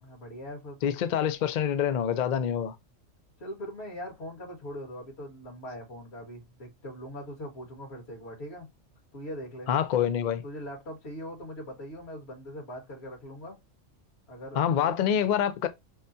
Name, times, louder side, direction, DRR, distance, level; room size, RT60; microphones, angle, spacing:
voice 1, 0.0-0.9 3.4-8.7 9.1-9.7 10.4-13.6 14.3-15.0, equal, 55° left, 1.8 m, -41 dB
voice 2, 0.8-2.8 9.7-10.4 14.6-15.7, left 9 dB, 80° left, 0.4 m, -26 dB
5.4 x 2.3 x 2.6 m
omnidirectional pair, 1.4 m